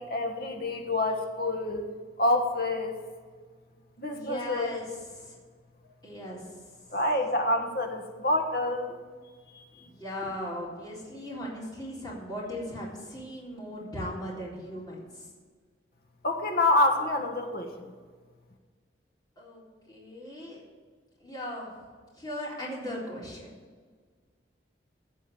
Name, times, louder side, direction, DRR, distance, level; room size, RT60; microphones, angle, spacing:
voice 1, 0.0-1.9 2.2-2.9 4.0-4.9 6.9-9.0 9.5-9.6 16.2-17.7, left 2 dB, 55° left, 4 dB, 1.5 m, -27 dB
voice 2, 4.0-4.9 5.2-5.3 6.0-6.4 9.7-15.3 19.4-20.6 21.2-21.7 22.2-23.5, left 1 dB, 20° left, -6 dB, 3.9 m, -38 dB
16.0 x 5.5 x 8.6 m, 1.5 s
head